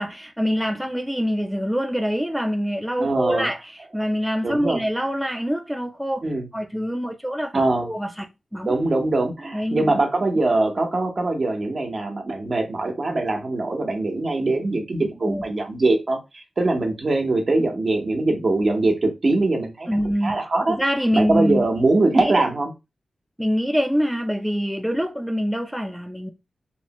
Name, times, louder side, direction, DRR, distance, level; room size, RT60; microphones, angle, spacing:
voice 1, 0.0-6.2 6.5-8.3 8.5-8.7 9.5-9.9 15.2-15.4 19.9-20.4 20.7-21.7 22.2-22.3 23.4-26.3, equal, 5° right, 0.5 m, -25 dB
voice 2, 3.0-3.5 4.4-4.8 6.2-6.5 7.5-7.9 8.6-20.8 21.1-22.7, right 2 dB, 55° right, 0.9 m, -22 dB
3.0 x 2.1 x 2.9 m
cardioid pair, 60°, 0 cm